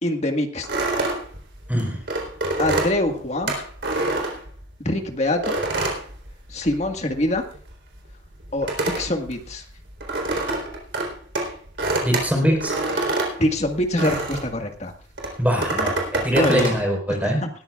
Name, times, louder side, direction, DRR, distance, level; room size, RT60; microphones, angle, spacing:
voice 1, 0.0-0.7 2.6-3.7 4.8-5.6 6.5-7.4 8.5-9.6 13.4-14.9 16.3-16.7 17.2-17.5, left 1 dB, 35° left, 4 dB, 1.7 m, -24 dB
sound 1, 0.6-4.9 5.4-6.9 7.2-14.6 15.2-16.8, right 2 dB, 60° right, 3.9 m, -26 dB
voice 2, 12.0-12.7 15.4-17.4, equal, 10° right, 0 dB, 4.5 m, -22 dB
20.0 x 14.0 x 2.4 m, 0.43 s
head